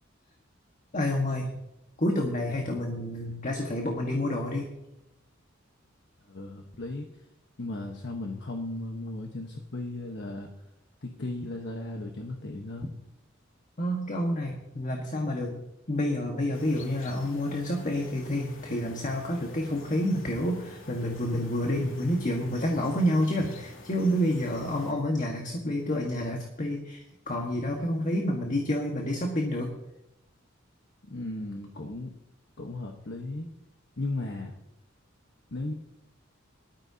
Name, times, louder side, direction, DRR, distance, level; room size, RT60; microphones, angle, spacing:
voice 1, 0.9-1.5 2.0-4.7 13.8-15.6 15.9-29.8, left 1 dB, 40° left, 1 dB, 1.6 m, -29 dB
voice 2, 6.3-7.1 7.6-10.5 11.0-12.9 31.1-32.1 32.6-33.5 34.0-34.6 35.5-35.7, left 2 dB, 60° left, 2 dB, 1.3 m, -36 dB
sound 1, 16.5-24.9, left 2 dB, 85° left, 2.5 m, -49 dB
20.0 x 13.5 x 2.9 m, 0.88 s
head